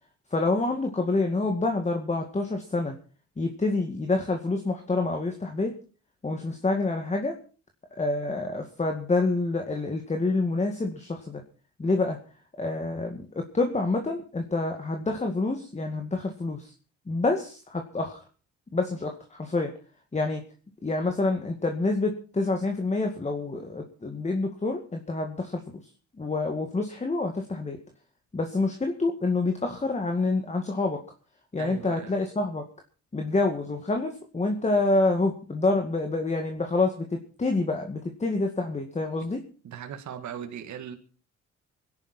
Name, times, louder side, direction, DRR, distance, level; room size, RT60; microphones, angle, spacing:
voice 1, 0.3-3.0 3.4-5.7 6.2-7.4 8.0-11.4 11.8-12.2 12.6-16.7 17.1-18.2 18.7-19.7 20.1-20.4 20.8-25.6 26.2-27.8 28.3-31.0 31.5-32.6 33.1-39.4, left 3 dB, 25° left, 2.1 m, -27 dB
voice 2, 31.6-32.1 39.6-41.0, right 8 dB, 70° right, 2.0 m, -38 dB
24.5 x 11.0 x 4.4 m
cardioid pair, 90°, 30 cm